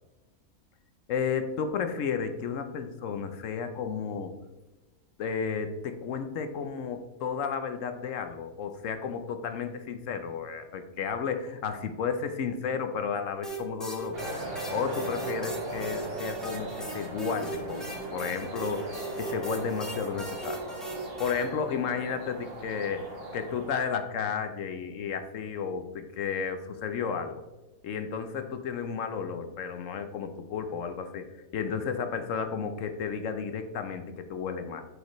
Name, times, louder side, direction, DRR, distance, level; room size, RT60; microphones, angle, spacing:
voice 1, 1.1-4.3 5.2-14.2 14.7-17.8 18.1-20.6 21.2-27.4 27.8-31.3 31.5-34.8, left 6 dB, 65° left, 8 dB, 1.0 m, -32 dB
sound 1, 13.4-21.4, right 3 dB, ahead, 1.2 m, -39 dB
sound 2, 14.1-23.9, right 1 dB, 45° right, 1.5 m, -39 dB
7.9 x 5.1 x 3.0 m, 1.1 s
omnidirectional pair, 1.5 m